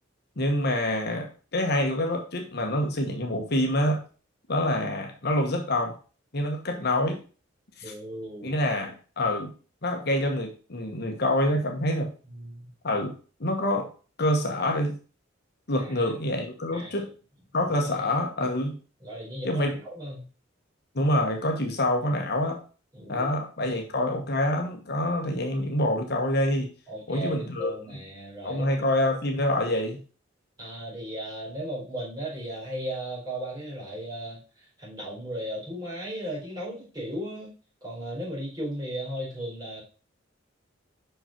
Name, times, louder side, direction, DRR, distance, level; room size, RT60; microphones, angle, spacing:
voice 1, 0.4-4.0 4.5-5.9 6.3-7.2 7.8-7.9 8.4-9.5 9.8-12.1 12.8-13.1 13.4-13.9 14.2-15.0 15.7-17.1 17.5-18.7 19.4-19.7 20.9-22.6 23.1-26.7 27.1-27.7 28.4-30.0, left 1 dB, 55° left, 3 dB, 1.1 m, -26 dB
voice 2, 7.8-8.6 12.3-12.7 15.8-16.1 16.7-17.1 17.8-18.1 19.0-20.2 22.9-23.3 23.7-23.9 26.9-28.7 30.6-34.4 34.8-37.5 37.8-39.8, equal, 20° right, -7 dB, 4.3 m, -36 dB
5.7 x 5.3 x 4.4 m, 0.37 s
head